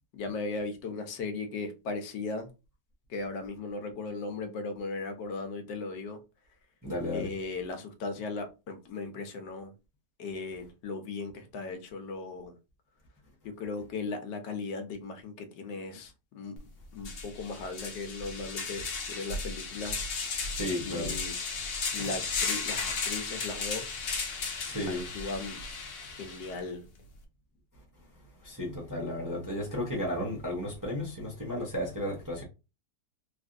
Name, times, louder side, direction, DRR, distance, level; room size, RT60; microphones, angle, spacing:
voice 1, 0.1-2.5 3.1-6.2 7.1-9.7 10.2-12.6 13.4-16.6 16.9-20.1 20.8-21.4 21.9-24.4 24.9-25.6 26.2-26.9, left 3 dB, 85° left, 1.3 m, -37 dB
voice 2, 6.8-7.3 20.6-21.2 24.6-25.1 28.4-32.4, left 1 dB, 20° right, 0.6 m, -33 dB
sound 1, 16.6-16.7 17.0-26.6, left 4 dB, 65° left, 0.6 m, -35 dB
3.5 x 2.5 x 2.5 m
omnidirectional pair, 1.8 m